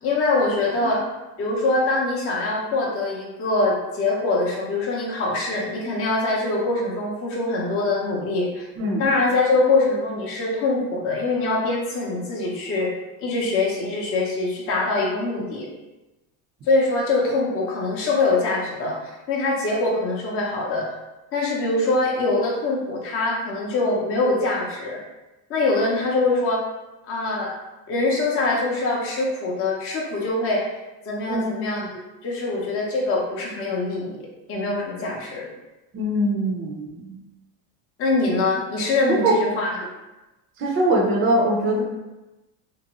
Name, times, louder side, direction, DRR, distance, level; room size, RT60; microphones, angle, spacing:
voice 1, 0.0-1.0 1.4-8.7 9.0-12.9 13.2-15.7 16.6-20.9 21.3-25.0 25.5-26.6 27.1-27.5 27.9-30.6 31.0-34.2 34.5-35.5 38.0-39.8, left 2 dB, 30° left, -3 dB, 0.6 m, -23 dB
voice 2, 35.9-37.1 39.1-39.3 40.6-41.8, right 1 dB, 25° right, -3 dB, 0.6 m, -22 dB
2.7 x 2.0 x 2.9 m, 1.0 s
supercardioid pair, 115°, 48 cm